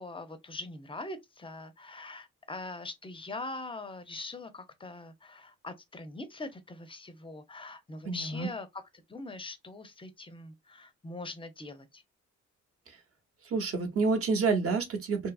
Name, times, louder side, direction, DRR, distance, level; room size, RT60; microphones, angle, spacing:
voice 1, 0.0-8.8 9.1-12.0, left 2 dB, 15° left, 0.5 m, -42 dB
voice 2, 8.0-8.5 13.5-15.3, right 4 dB, 50° right, 0.9 m, -28 dB
2.8 x 2.3 x 2.3 m
cardioid pair, 90°, 30 cm